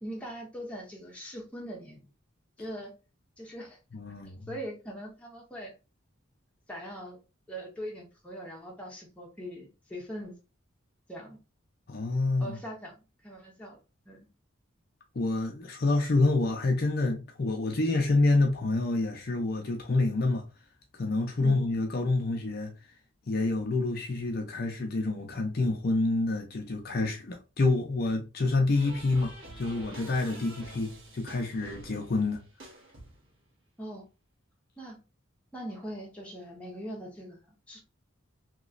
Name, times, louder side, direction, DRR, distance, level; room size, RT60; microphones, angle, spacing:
voice 1, 0.0-2.1 2.6-2.9 3.4-3.8 4.5-5.7 6.7-7.2 7.5-10.4 11.1-11.4 12.4-13.8 14.1-14.3 21.4-21.6 30.4-30.5 33.8-34.1 34.8-35.0 35.5-37.4 37.7-37.8, equal, 5° left, 1.0 m, -41 dB
voice 2, 3.9-4.5 11.9-12.6 15.1-20.4 21.0-22.7 23.3-32.4, left 2 dB, 50° left, 0.6 m, -27 dB
Big Band Music, 28.7-33.4, right 2 dB, 90° right, 1.3 m, -48 dB
3.1 x 2.9 x 2.5 m
head